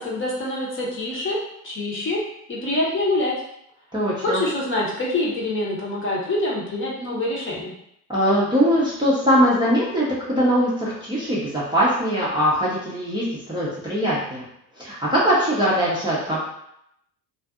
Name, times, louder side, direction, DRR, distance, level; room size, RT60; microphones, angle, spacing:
voice 1, 0.0-1.4 1.6-2.2 2.5-3.3 4.2-7.7, left 2 dB, 25° left, -4 dB, 0.8 m, -25 dB
voice 2, 3.9-4.4 8.1-14.4 14.7-16.4, equal, 10° right, -8 dB, 0.6 m, -21 dB
2.6 x 2.5 x 2.4 m, 0.76 s
hypercardioid pair, 70°, 50 cm